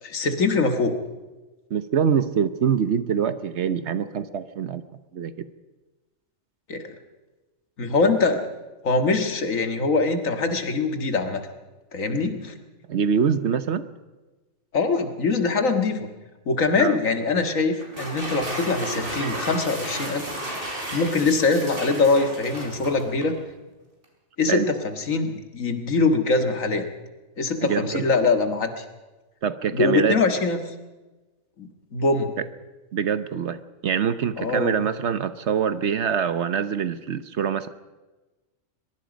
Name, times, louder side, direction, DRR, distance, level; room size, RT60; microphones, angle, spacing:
voice 1, 0.0-0.9 6.7-6.9 7.8-8.5 8.8-11.4 11.9-12.5 14.7-16.1 16.5-20.3 20.9-23.3 24.4-26.8 27.4-28.8 29.7-30.6 31.6-32.3 34.4-34.9, left 3 dB, 80° left, 6 dB, 2.1 m, -23 dB
voice 2, 1.7-4.8 5.1-5.3 12.9-13.9 16.8-17.0 24.5-24.7 27.6-28.1 29.4-30.2 32.9-37.7, right 7 dB, 60° right, 13 dB, 1.1 m, -24 dB
sound 1, 17.8-23.4, right 1 dB, 45° right, 5.0 m, -33 dB
23.0 x 22.0 x 5.2 m, 1.2 s
omnidirectional pair, 1.4 m